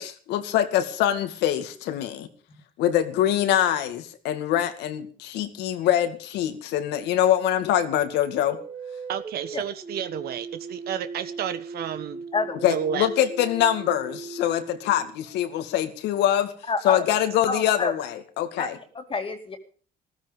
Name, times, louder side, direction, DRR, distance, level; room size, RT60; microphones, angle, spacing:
voice 1, 0.0-2.3 2.8-8.6 12.6-16.5 16.8-18.8, left 11 dB, 85° left, 2.3 m, -24 dB
sound 1, 8.3-15.7, right 4 dB, 35° right, 4.1 m, -39 dB
voice 2, 9.1-12.2 12.7-13.1, right 9 dB, 65° right, 1.3 m, -31 dB
voice 3, 16.7-17.1 17.5-17.9 18.6-18.7 18.9-19.6, left 4 dB, 30° left, 2.6 m, -28 dB
15.0 x 14.5 x 5.3 m
cardioid pair, 110°, 17 cm